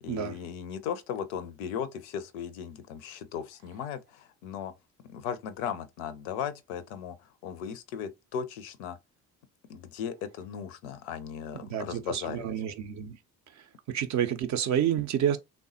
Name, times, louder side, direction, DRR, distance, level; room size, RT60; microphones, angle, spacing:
voice 1, 0.0-4.7 5.1-9.0 9.7-12.6, left 8 dB, 60° left, 0.5 m, -37 dB
voice 2, 11.6-13.2 13.9-15.4, right 9 dB, 40° right, 0.4 m, -29 dB
3.3 x 2.0 x 2.6 m
figure-of-eight pair, 45°, 47 cm